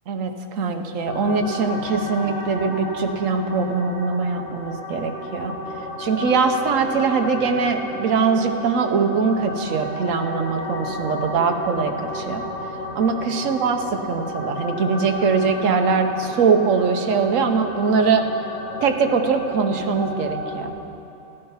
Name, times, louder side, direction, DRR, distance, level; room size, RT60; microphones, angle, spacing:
voice 1, 0.1-5.5 6.0-12.4 12.9-18.3 18.8-20.7, right 5 dB, 70° right, 6 dB, 1.2 m, -22 dB
sound 1, 1.0-20.7, left 1 dB, 55° left, 1.5 m, -32 dB
14.0 x 9.3 x 5.6 m, 3.0 s
omnidirectional pair, 1.5 m